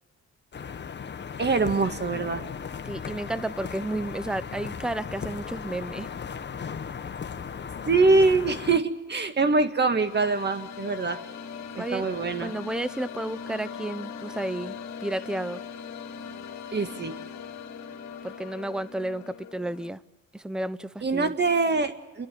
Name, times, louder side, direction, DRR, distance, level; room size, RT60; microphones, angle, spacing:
sound 1, 0.5-8.8, left 6 dB, 35° left, 1.1 m, -36 dB
voice 1, 1.4-2.4 7.9-11.2 11.8-12.5 16.7-17.1 21.0-22.3, right 3 dB, 35° right, 8 dB, 2.0 m, -24 dB
voice 2, 2.8-6.1 11.7-12.1 12.4-15.6 18.2-20.0 20.3-21.3, right 1 dB, 5° right, 17 dB, 0.6 m, -32 dB
sound 2, 9.6-19.9, left 6 dB, 65° left, 2.4 m, -40 dB
29.5 x 11.0 x 9.3 m, 1.1 s
cardioid pair, 90°, 30 cm